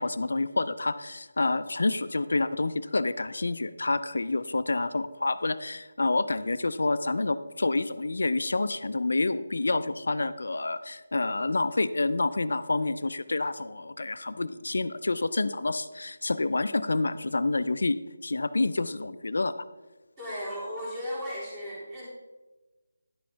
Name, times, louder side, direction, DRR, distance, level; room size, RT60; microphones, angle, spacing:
voice 1, 0.0-18.0 18.2-19.5, left 2 dB, 70° left, 13 dB, 0.5 m, -28 dB
voice 2, 20.2-22.1, equal, 15° right, -8 dB, 3.5 m, -35 dB
11.0 x 7.6 x 3.4 m, 1.2 s
figure-of-eight pair, 160°, 0 cm